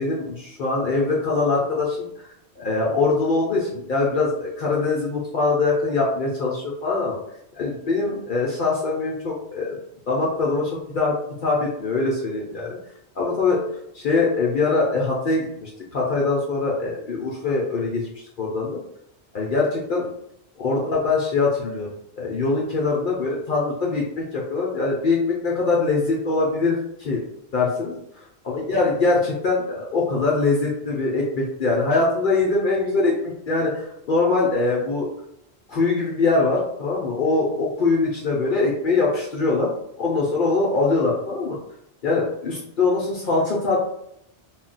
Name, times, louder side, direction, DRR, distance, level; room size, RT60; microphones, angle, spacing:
voice 1, 0.0-2.1 2.6-7.2 7.5-9.8 10.1-11.1 11.4-12.8 13.2-13.6 13.9-18.8 19.3-20.0 20.6-21.9 22.2-27.2 27.5-27.9 28.5-35.1 35.7-39.7 40.0-41.6 42.0-43.8, left 3 dB, 55° left, -4 dB, 0.7 m, -23 dB
2.3 x 2.1 x 3.8 m, 0.75 s
omnidirectional pair, 1.1 m